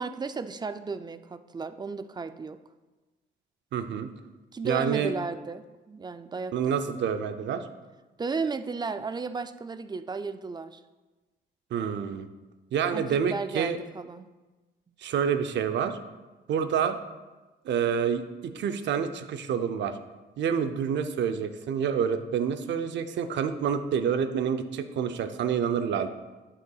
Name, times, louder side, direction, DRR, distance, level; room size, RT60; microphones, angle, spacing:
voice 1, 0.0-2.6 4.5-6.5 8.2-10.8 12.9-14.3, right 4 dB, 20° right, 11 dB, 0.4 m, -34 dB
voice 2, 3.7-4.1 4.6-5.1 6.5-7.7 11.7-12.3 12.7-13.8 15.0-16.0 16.5-17.0 17.6-19.9 20.4-26.1, right 7 dB, 65° right, 9 dB, 0.6 m, -28 dB
11.0 x 6.7 x 2.3 m, 1.2 s
cardioid pair, 90°, 20 cm